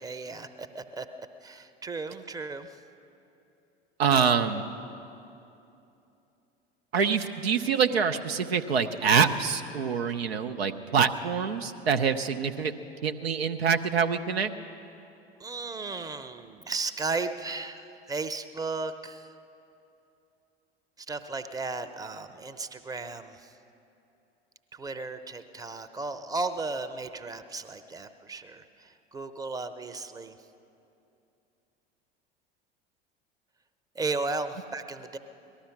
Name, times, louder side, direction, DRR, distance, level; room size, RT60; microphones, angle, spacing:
voice 1, 0.0-2.8 15.4-19.3 21.0-23.5 24.7-30.3 33.9-35.2, right 3 dB, 10° right, 10 dB, 0.7 m, -35 dB
voice 2, 4.0-4.6 6.9-12.7 13.0-14.5, right 6 dB, 80° right, 6 dB, 0.7 m, -25 dB
18.5 x 13.0 x 5.9 m, 2.8 s
figure-of-eight pair, 75°, 31 cm